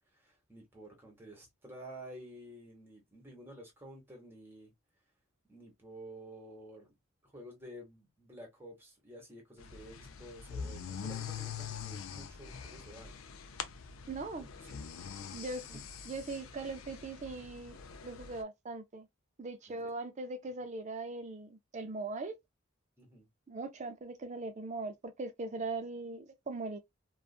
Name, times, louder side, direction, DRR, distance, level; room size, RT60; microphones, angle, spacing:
voice 1, 0.1-4.7 5.5-6.9 7.2-13.2 14.4-14.8 15.7-15.8 19.7-19.9 23.0-23.3, right 1 dB, 10° right, 1.0 m, -51 dB
sound 1, 9.6-18.4, left 7 dB, 70° left, 0.4 m, -44 dB
voice 2, 14.1-14.5 15.3-15.8 16.0-17.8 18.0-19.1 19.4-22.4 23.5-26.8, right 3 dB, 35° right, 0.4 m, -40 dB
2.5 x 2.4 x 2.3 m
head